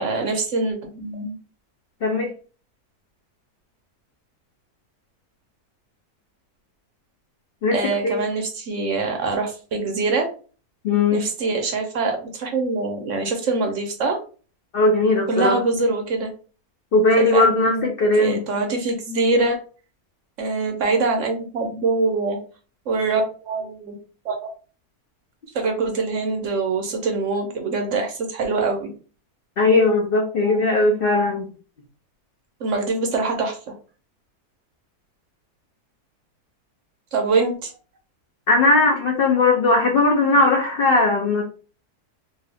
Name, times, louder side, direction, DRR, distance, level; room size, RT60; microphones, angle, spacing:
voice 1, 0.0-1.3 7.7-10.3 11.1-14.2 15.3-16.3 17.2-17.9 18.1-19.6 20.4-22.4 22.9-24.0 24.2-24.5 25.5-28.9 32.6-33.8 37.1-37.7, right 3 dB, 65° right, 4 dB, 0.8 m, -24 dB
voice 2, 2.0-2.3 7.6-7.8 8.0-8.2 10.8-11.2 14.7-15.6 16.9-18.4 29.6-31.5 38.5-41.4, left 2 dB, 70° left, 1 dB, 0.5 m, -18 dB
2.7 x 2.4 x 3.3 m, 0.37 s
omnidirectional pair, 1.7 m